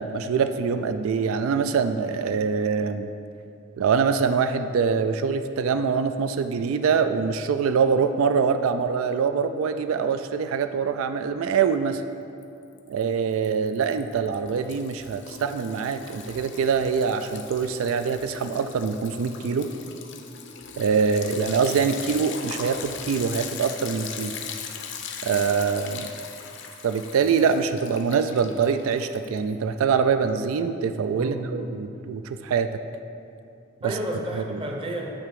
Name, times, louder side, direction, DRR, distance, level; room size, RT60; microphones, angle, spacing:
voice 1, 0.0-3.1 3.8-12.0 12.9-19.7 20.8-24.3 25.2-26.1 26.8-32.7 33.8-33.9 34.3-34.6, right 6 dB, 75° right, 9 dB, 0.3 m, -24 dB
Liquid, 12.4-13.0 13.3-29.5, left 7 dB, 60° left, 0.6 m, -39 dB
voice 2, 31.2-31.7 33.8-35.1, right 1 dB, 25° right, 2 dB, 0.7 m, -31 dB
8.7 x 3.7 x 6.8 m, 2.6 s
head